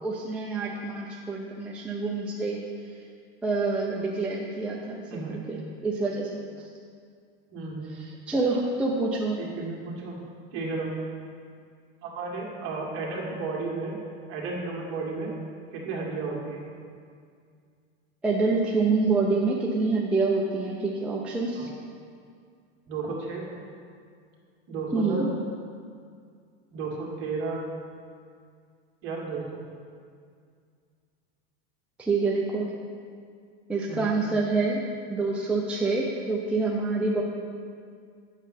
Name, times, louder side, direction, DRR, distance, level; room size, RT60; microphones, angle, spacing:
voice 1, 0.0-2.6 3.4-6.4 7.9-9.4 18.2-21.7 24.9-25.3 32.0-32.7 33.7-34.8 35.1-37.2, right 3 dB, 5° right, -3 dB, 0.4 m, -27 dB
voice 2, 5.1-5.4 7.5-7.9 9.4-10.2 10.5-10.9 12.0-14.0 14.3-15.3 15.7-16.7 21.6-21.7 22.9-23.4 24.7-25.2 26.7-27.6 29.0-29.6 33.9-34.1, right 3 dB, 40° right, -2 dB, 1.7 m, -33 dB
8.1 x 6.1 x 4.1 m, 2.2 s
supercardioid pair, 140°, 31 cm